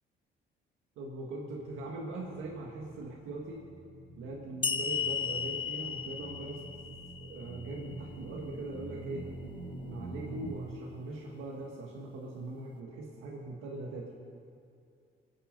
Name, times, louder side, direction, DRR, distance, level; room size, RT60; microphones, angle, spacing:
voice 1, 1.0-3.7 4.2-6.7 7.2-9.3 9.8-14.2, right 2 dB, 90° right, -2 dB, 1.8 m, -41 dB
sound 1, 2.0-10.5, right 2 dB, 45° left, 3.9 m, -47 dB
sound 2, 4.6-8.0, left 6 dB, 25° left, 0.6 m, -35 dB
23.5 x 8.7 x 5.4 m, 2.4 s
cardioid pair, 90°, 20 cm